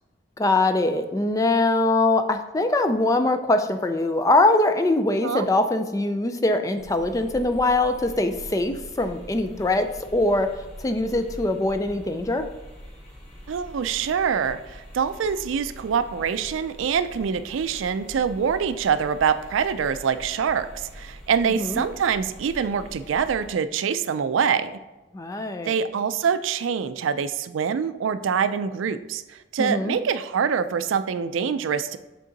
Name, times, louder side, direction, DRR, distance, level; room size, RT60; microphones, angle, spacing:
voice 1, 0.4-9.9 10.1-10.5 10.8-12.4 21.6-21.8 25.1-25.7 29.6-30.0, left 2 dB, 15° left, 8 dB, 0.3 m, -22 dB
sound 1, 6.8-23.5, equal, 35° left, 1.9 m, -44 dB
voice 2, 13.5-24.8 25.7-32.0, right 7 dB, 85° right, 12 dB, 0.4 m, -25 dB
7.6 x 3.7 x 3.9 m, 1.1 s
head